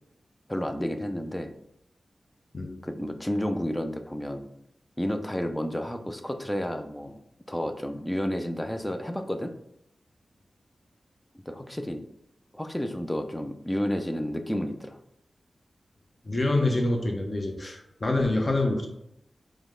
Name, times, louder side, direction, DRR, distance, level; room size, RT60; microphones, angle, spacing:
voice 1, 0.5-1.5 2.8-4.5 5.0-7.2 7.5-9.5 11.5-12.0 12.5-15.0, equal, 10° left, 6 dB, 0.4 m, -31 dB
voice 2, 16.2-18.9, left 2 dB, 30° left, 2 dB, 0.7 m, -26 dB
4.9 x 2.1 x 3.7 m, 0.76 s
wide cardioid pair, 125°, 0 cm